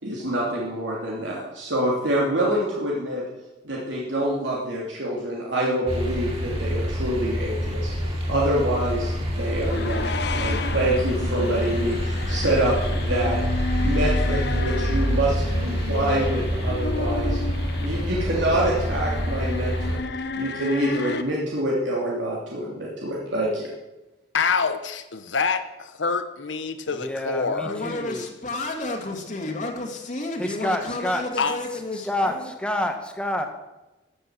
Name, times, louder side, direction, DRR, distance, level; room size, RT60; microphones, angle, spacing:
voice 1, 0.0-3.2 3.6-13.4 13.8-17.4 17.8-20.0 20.3-23.7, right 1 dB, 85° right, -4 dB, 3.0 m, -26 dB
sound 1, 5.9-20.0, equal, 35° right, 4.1 m, -26 dB
sound 2, 9.4-21.2, left 3 dB, 65° left, 0.9 m, -33 dB
voice 2, 24.3-27.7 31.4-31.6, left 5 dB, 90° left, 9 dB, 1.0 m, -26 dB
voice 3, 26.9-28.3 30.4-31.4 32.1-33.5, left 1 dB, 5° left, 5 dB, 1.6 m, -28 dB
voice 4, 27.6-32.5, left 2 dB, 45° left, 1 dB, 2.2 m, -31 dB
15.0 x 8.2 x 7.6 m, 1.0 s
head